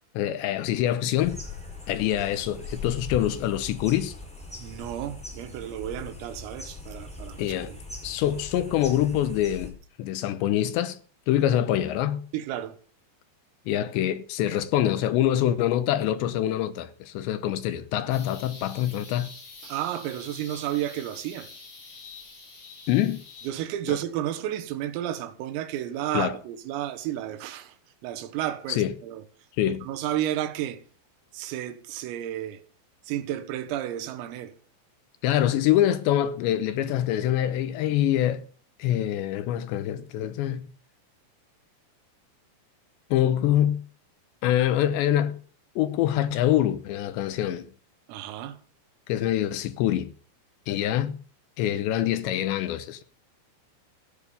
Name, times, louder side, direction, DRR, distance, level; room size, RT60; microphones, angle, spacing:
voice 1, 0.1-1.4 1.9-4.1 7.4-7.7 8.0-9.7 10.0-11.0 11.3-12.2 13.7-19.3 22.9-23.2 23.9-24.0 26.1-26.3 28.7-28.9 29.6-29.8 35.2-38.4 38.8-40.6 43.1-43.8 44.4-45.3 45.8-47.7 49.1-50.1 50.7-51.2 51.6-53.0, left 12 dB, 80° left, 2.7 m, -25 dB
sound 1, 1.2-9.7, left 3 dB, ahead, 4.0 m, -40 dB
voice 2, 4.6-7.8 12.3-12.8 19.6-21.5 23.4-27.8 28.0-29.2 29.7-30.8 31.3-32.6 33.1-34.5 48.1-48.6, right 12 dB, 85° right, 4.1 m, -32 dB
sound 2, 18.1-23.5, left 3 dB, 45° left, 7.8 m, -46 dB
15.5 x 10.5 x 7.0 m
omnidirectional pair, 5.9 m